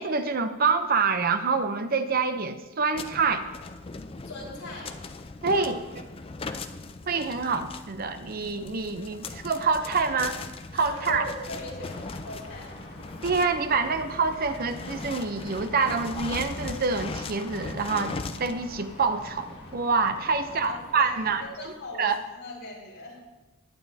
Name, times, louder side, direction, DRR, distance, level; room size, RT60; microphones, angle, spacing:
voice 1, 0.0-3.4 5.4-5.8 7.1-10.4 10.7-11.3 13.2-21.4 22.0-22.2, right 4 dB, 45° right, 9 dB, 0.6 m, -26 dB
sound 1, 2.9-21.7, left 3 dB, 25° left, 0.4 m, -40 dB
voice 2, 4.2-5.0 5.5-5.6 10.7-12.9 20.3-23.2, left 2 dB, 75° left, -4 dB, 4.0 m, -40 dB
sound 2, 11.7-21.5, left 1 dB, 50° left, 2.5 m, -46 dB
20.0 x 9.2 x 2.7 m, 1.1 s
head